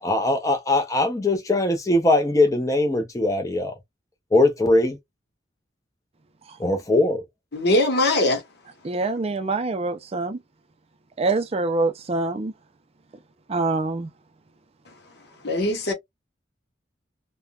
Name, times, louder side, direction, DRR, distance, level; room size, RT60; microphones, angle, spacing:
voice 1, 0.0-3.7 4.3-5.0 6.6-7.2, left 2 dB, 15° left, 0.6 m, -21 dB
voice 2, 7.5-8.4 15.4-15.9, left 1 dB, 60° left, 1.0 m, -21 dB
voice 3, 8.8-10.4 11.2-12.5 13.5-14.1, right 3 dB, 30° right, 0.4 m, -25 dB
3.5 x 2.1 x 2.3 m
head